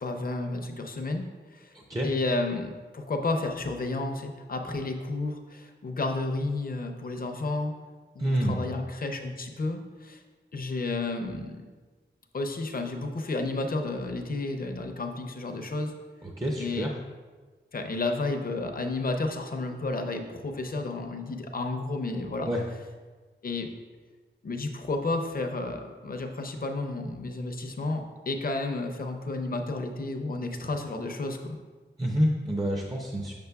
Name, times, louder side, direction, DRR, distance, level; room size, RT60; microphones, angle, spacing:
voice 1, 0.0-1.3 1.5-1.7 2.0-7.7 8.1-10.2 10.5-11.7 12.3-15.9 16.6-16.9 17.7-22.5 23.4-23.7 24.4-31.5, left 2 dB, 45° left, 5 dB, 0.6 m, -31 dB
voice 2, 1.7-2.1 8.2-8.6 16.2-16.9 22.5-22.6 32.0-33.3, equal, 20° right, 0 dB, 0.5 m, -28 dB
6.7 x 6.2 x 2.3 m, 1.4 s
wide cardioid pair, 105°, 20 cm